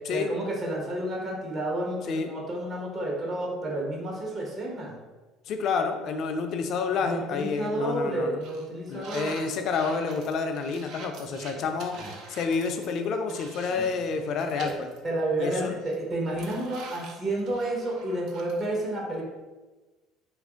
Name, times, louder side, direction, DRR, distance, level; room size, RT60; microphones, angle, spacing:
voice 1, 0.1-5.0 7.0-9.5 11.6-11.7 11.9-12.1 13.7-13.9 14.6-14.8 15.0-19.2, right 1 dB, 35° right, -3 dB, 1.0 m, -31 dB
voice 2, 5.5-8.4 8.9-12.0 12.3-14.9 15.4-15.7, left 5 dB, 60° left, 6 dB, 0.4 m, -29 dB
sound 1, 6.9-7.3 7.7-7.9 8.4-14.0 14.3-15.0 15.3-15.4 15.8-18.7, right 4 dB, 65° right, 0.5 m, -46 dB
2.9 x 2.5 x 3.6 m, 1.2 s
supercardioid pair, 90°, 0 cm